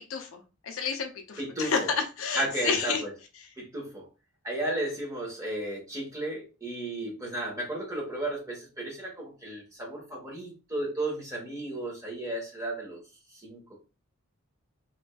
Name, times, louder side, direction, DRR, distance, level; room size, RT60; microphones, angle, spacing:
voice 1, 0.0-1.9 2.2-3.0, left 5 dB, 60° left, 4 dB, 0.5 m, -31 dB
voice 2, 1.4-1.9 2.3-3.1 3.6-4.1 4.4-13.0 13.4-13.7, right 1 dB, 15° right, -2 dB, 1.0 m, -34 dB
3.1 x 2.5 x 2.2 m, 0.30 s
head